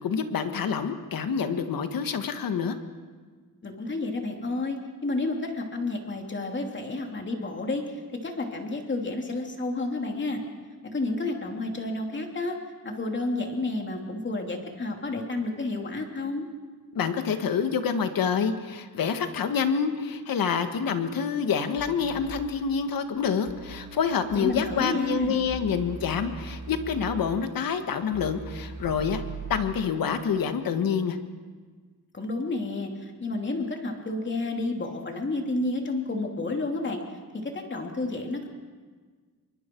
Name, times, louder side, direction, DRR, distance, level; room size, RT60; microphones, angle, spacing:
voice 1, 0.0-2.8 16.9-29.2 29.5-31.2, left 6 dB, 80° left, 8 dB, 1.6 m, -27 dB
voice 2, 3.6-4.8 5.0-10.4 10.9-12.6 12.8-16.4 24.3-25.4 32.1-37.0 37.3-38.5, left 2 dB, 35° left, 2 dB, 3.0 m, -30 dB
sound 1, 21.8-22.3 23.5-27.2 28.1-29.6, right 4 dB, 65° right, 4.8 m, -40 dB
27.0 x 23.5 x 4.6 m, 1.5 s
wide cardioid pair, 140°, 34 cm